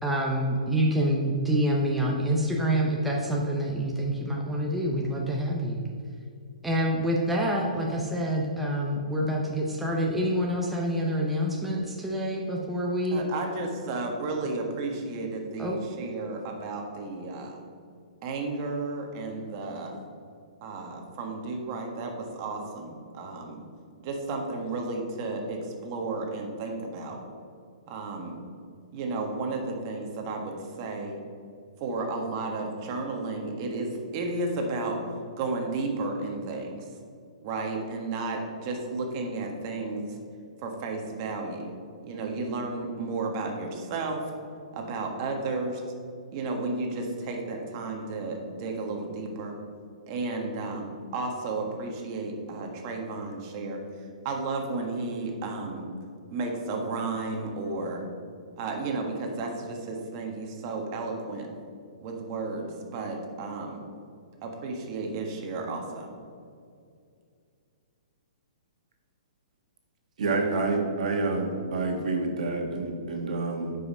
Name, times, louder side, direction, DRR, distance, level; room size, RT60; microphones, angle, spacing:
voice 1, 0.0-5.8 6.6-13.2 15.6-15.8, equal, 5° right, -3 dB, 0.7 m, -27 dB
voice 2, 13.1-17.6 18.2-19.9 20.6-23.6 24.0-27.2 27.9-28.4 28.9-31.2 31.8-35.0 35.3-36.9 37.4-40.2 40.6-41.7 42.0-44.2 44.7-45.8 46.3-49.6 50.1-53.8 54.2-55.8 56.3-58.0 58.6-61.5 62.0-63.8 64.4-66.1, right 3 dB, 30° right, 2 dB, 1.4 m, -33 dB
voice 3, 70.2-73.8, right 3 dB, 60° right, 2 dB, 1.6 m, -28 dB
9.2 x 5.5 x 5.5 m, 2.3 s
hypercardioid pair, 160°, 4 cm